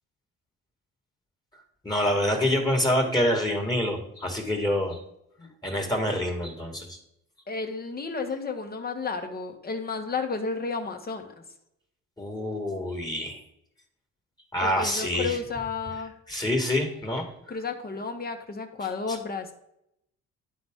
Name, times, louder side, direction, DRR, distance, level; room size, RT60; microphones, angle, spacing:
voice 1, 1.8-5.0 5.6-7.0 12.2-13.4 14.5-15.4 16.3-17.3, left 1 dB, 15° left, 2 dB, 1.6 m, -26 dB
voice 2, 7.5-11.4 14.6-16.1 17.5-19.5, left 4 dB, 30° left, 5 dB, 1.2 m, -32 dB
11.5 x 4.0 x 3.6 m, 0.78 s
cardioid pair, 90°, 30 cm